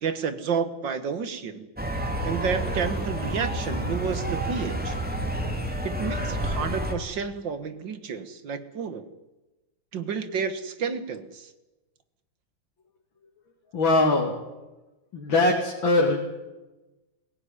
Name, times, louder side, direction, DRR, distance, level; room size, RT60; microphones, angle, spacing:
voice 1, 0.0-1.7 2.2-5.0 5.8-9.1 9.9-11.5, right 6 dB, 60° right, 11 dB, 2.0 m, -30 dB
sound 1, 1.8-6.9, right 1 dB, 5° right, 3.0 m, -29 dB
voice 2, 13.7-14.3 15.1-16.2, left 2 dB, 60° left, 0 dB, 3.3 m, -21 dB
22.5 x 17.0 x 10.0 m, 1.1 s
omnidirectional pair, 2.4 m